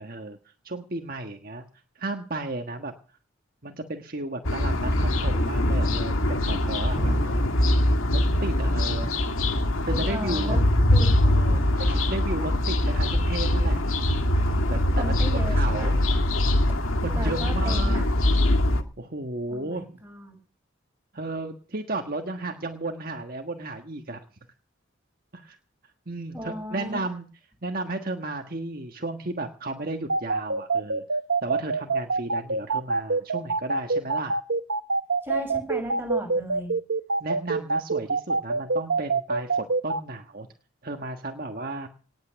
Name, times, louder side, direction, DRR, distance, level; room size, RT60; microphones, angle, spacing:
voice 1, 0.0-1.7 2.0-2.9 3.6-7.3 7.8-9.1 9.9-10.6 11.2-13.8 14.3-16.0 17.0-18.1 19.0-19.9 21.1-24.2 25.3-25.6 26.1-27.2 27.6-31.0 31.4-34.4 37.2-40.5 40.8-41.9, right 2 dB, 45° right, 4 dB, 1.4 m, -34 dB
sound 1, 4.4-18.8, left 1 dB, 90° left, 2.1 m, -23 dB
voice 2, 10.1-10.6 10.9-11.1 11.5-11.7 15.0-16.0 17.1-18.1 19.5-20.3 26.3-27.0 35.2-36.7, equal, 10° right, 2 dB, 6.4 m, -35 dB
sound 2, 30.1-40.0, right 3 dB, 75° right, 1.2 m, -25 dB
19.0 x 8.6 x 6.9 m, 0.40 s
head